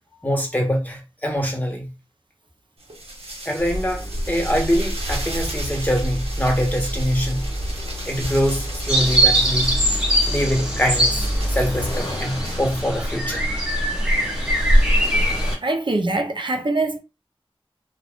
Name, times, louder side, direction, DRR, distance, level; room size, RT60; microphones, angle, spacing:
voice 1, 0.2-1.9 3.4-7.4 8.0-9.8 10.3-13.4, equal, 15° left, 1.1 m, -24 dB
sound 1, 2.8-12.9, right 1 dB, 85° right, 1.1 m, -37 dB
Accelerating revving vroom, 3.6-15.5, equal, 40° left, 1.2 m, -26 dB
sound 2, 8.9-15.6, right 1 dB, 10° right, 1.2 m, -23 dB
voice 2, 15.6-17.0, right 2 dB, 55° right, 0.6 m, -23 dB
2.4 x 2.3 x 3.5 m
wide cardioid pair, 40°, 10 cm